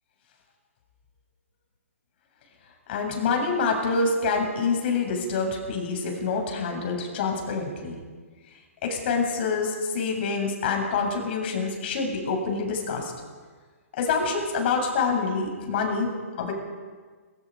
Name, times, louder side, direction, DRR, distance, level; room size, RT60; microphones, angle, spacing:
voice 1, 2.9-8.0 8.8-13.1 14.0-16.1 16.4-16.5, left 4 dB, 45° left, 2 dB, 7.5 m, -26 dB
26.0 x 25.5 x 5.1 m, 1.5 s
figure-of-eight pair, 130°, 8 cm